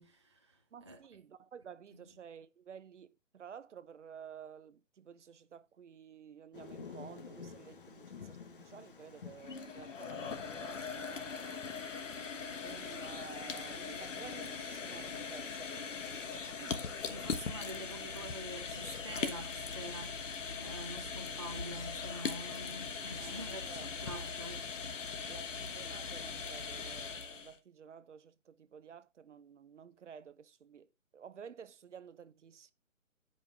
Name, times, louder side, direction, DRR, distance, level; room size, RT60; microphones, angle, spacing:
voice 1, 0.0-1.0 1.9-2.0 17.1-25.3, equal, 20° right, 0.5 m, -47 dB
voice 2, 0.7-11.8 12.6-16.8 23.2-24.3 25.3-32.7, right 7 dB, 60° right, 0.8 m, -53 dB
Thunder, 6.5-11.8, left 6 dB, 40° left, 0.9 m, -51 dB
sound 1, 9.3-27.6, left 5 dB, 65° left, 1.2 m, -40 dB
10.0 x 5.4 x 3.6 m
hypercardioid pair, 170°, 40 cm